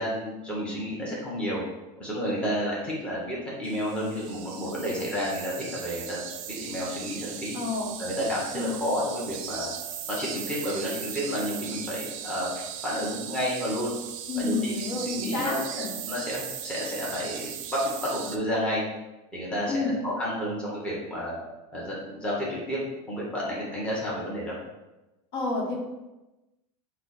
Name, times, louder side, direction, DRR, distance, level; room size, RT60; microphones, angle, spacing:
voice 1, 0.0-1.6 2.0-7.6 8.0-9.7 10.1-14.0 14.4-18.8 19.3-21.4 21.7-22.8 23.1-24.6, equal, 5° left, -7 dB, 1.0 m, -31 dB
sound 1, 3.6-18.4, right 10 dB, 70° right, 0.4 m, -38 dB
voice 2, 7.5-7.9 8.5-8.7 14.3-15.9 19.7-20.0 25.3-25.8, left 3 dB, 65° left, -2 dB, 1.0 m, -29 dB
4.4 x 2.2 x 4.0 m, 1.0 s
supercardioid pair, 155°, 17 cm